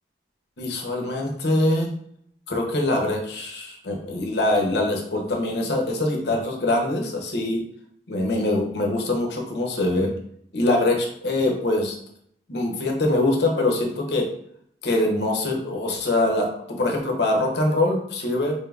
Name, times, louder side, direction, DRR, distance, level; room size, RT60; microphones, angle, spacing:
voice 1, 0.6-1.9 2.5-7.6 8.1-10.1 10.5-12.0 12.5-14.3 14.8-18.5, left 2 dB, 70° left, 1 dB, 0.8 m, -23 dB
4.5 x 3.4 x 2.3 m, 0.69 s
head